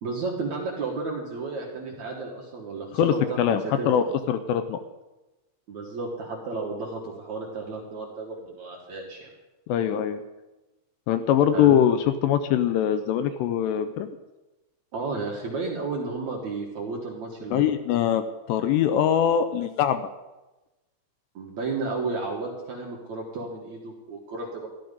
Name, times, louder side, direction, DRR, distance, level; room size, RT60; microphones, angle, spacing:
voice 1, 0.0-3.9 5.7-9.2 11.5-11.8 14.9-17.7 21.3-24.7, right 3 dB, 55° right, -2 dB, 2.2 m, -32 dB
voice 2, 2.9-4.8 9.7-10.2 11.1-14.1 17.5-18.2 18.5-20.1, left 9 dB, 80° left, 9 dB, 2.6 m, -22 dB
14.0 x 12.0 x 5.3 m, 1.1 s
omnidirectional pair, 5.3 m